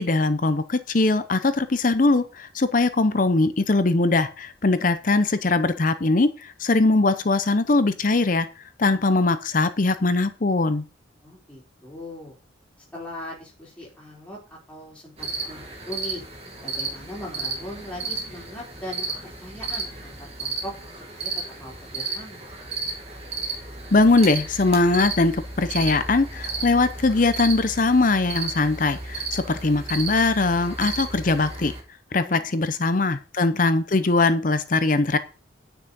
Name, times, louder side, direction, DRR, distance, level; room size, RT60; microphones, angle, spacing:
voice 1, 0.0-10.8 23.9-31.7 32.1-35.2, left 3 dB, 45° left, 12 dB, 0.6 m, -21 dB
voice 2, 11.2-12.3 12.9-16.2 16.6-20.7 21.1-21.3 21.6-22.4 32.2-32.7, left 1 dB, 5° left, -5 dB, 4.3 m, -39 dB
sound 1, 15.2-31.8, right 3 dB, 30° right, 2.2 m, -33 dB
9.6 x 6.1 x 5.3 m, 0.34 s
head